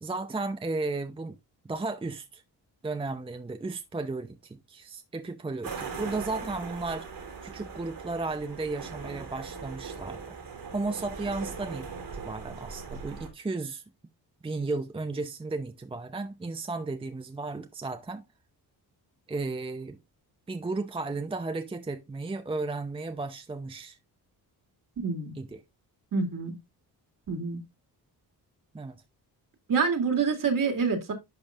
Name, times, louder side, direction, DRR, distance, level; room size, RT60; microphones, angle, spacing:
voice 1, 0.0-1.4 1.6-2.4 2.8-7.1 7.4-10.4 10.7-11.9 12.1-13.8 14.4-18.2 19.3-20.0 20.5-24.0 25.4-25.6 28.7-29.0, right 3 dB, 15° right, 0.6 m, -34 dB
sound 1, 5.6-13.3, right 5 dB, 75° right, 3.8 m, -40 dB
voice 2, 25.0-25.4 26.1-26.6 27.3-27.6 29.7-31.1, right 5 dB, 55° right, 2.3 m, -27 dB
10.5 x 5.2 x 2.5 m
cardioid pair, 95°, 40 cm